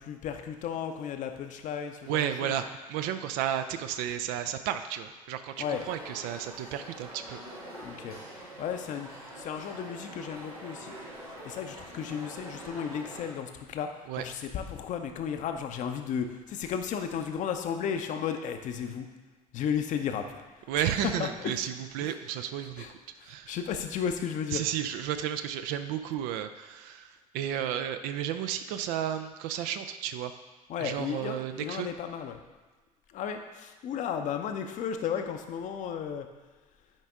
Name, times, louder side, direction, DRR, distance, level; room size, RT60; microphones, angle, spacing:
voice 1, 0.0-2.5 5.6-5.9 7.8-8.2 8.6-11.0 11.4-19.1 19.5-20.4 20.8-21.6 22.0-22.1 22.8-22.9 23.2-24.6 30.7-32.4 33.1-36.3, left 7 dB, 40° left, 6 dB, 0.7 m, -34 dB
voice 2, 2.1-7.4 14.1-14.2 20.7-23.6 24.5-30.3 30.8-31.9, right 10 dB, 55° right, 9 dB, 0.5 m, -33 dB
sound 1, 5.5-13.3, right 1 dB, 90° right, 1.5 m, -45 dB
9.2 x 5.1 x 3.7 m, 1.3 s
figure-of-eight pair, 60°, 19 cm